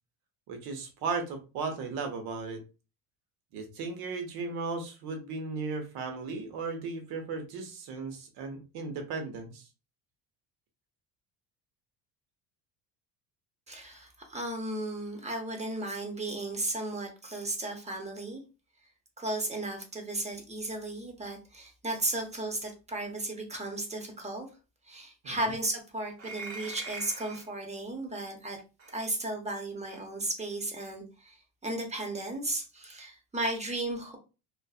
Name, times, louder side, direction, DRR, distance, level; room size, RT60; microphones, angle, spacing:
voice 1, 0.5-2.6 3.5-9.7 25.2-25.5, right 4 dB, 75° right, 4 dB, 0.9 m, -36 dB
voice 2, 13.7-18.4 19.2-24.5 24.9-28.6 28.9-31.4 31.6-34.2, right 2 dB, 15° right, 2 dB, 0.7 m, -35 dB
sound 1, 26.2-27.5 28.8-28.9 29.9-30.0, right 3 dB, 45° right, 1.0 m, -42 dB
2.5 x 2.4 x 2.4 m, 0.30 s
cardioid pair, 115°, 38 cm